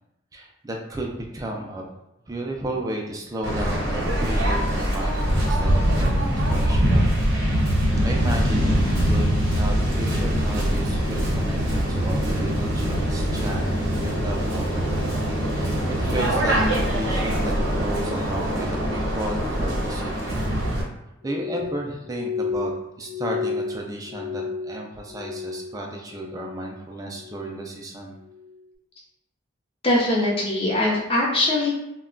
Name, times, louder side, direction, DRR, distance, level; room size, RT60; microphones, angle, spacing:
voice 1, 0.3-1.9 2.3-7.1 8.0-13.6 14.0-15.1 15.5-20.3 21.2-22.7 23.0-28.1, right 1 dB, 15° right, 0 dB, 0.4 m, -33 dB
Waves surf, 3.4-20.8, equal, 70° right, 0.8 m, -23 dB
Glass, 21.2-25.8 26.1-26.8 27.1-27.7 28.3-28.6, left 5 dB, 90° left, 0.9 m, -32 dB
voice 2, 29.8-31.7, left 1 dB, 30° left, -3 dB, 0.6 m, -21 dB
2.2 x 2.1 x 3.7 m, 0.85 s
head